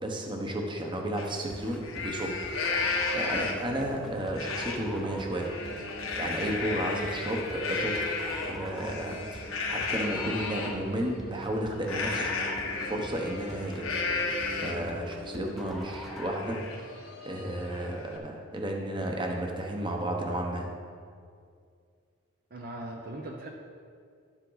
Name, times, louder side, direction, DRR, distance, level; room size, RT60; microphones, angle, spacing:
voice 1, 0.0-5.5 6.2-12.5 12.8-13.9 14.6-16.6 17.2-20.7, right 1 dB, 25° right, 1 dB, 1.1 m, -33 dB
Livestock farm animals working animals, 1.2-1.3 1.7-3.8 4.3-4.8 5.2-10.7 11.8-14.9 15.4-15.5 15.8-18.2, left 4 dB, 80° left, 1.3 m, -33 dB
sound 1, 1.5-16.4, equal, ahead, 0.7 m, -43 dB
voice 2, 22.5-23.5, right 1 dB, 45° right, 0 dB, 0.7 m, -39 dB
11.5 x 7.4 x 4.0 m, 2.2 s
head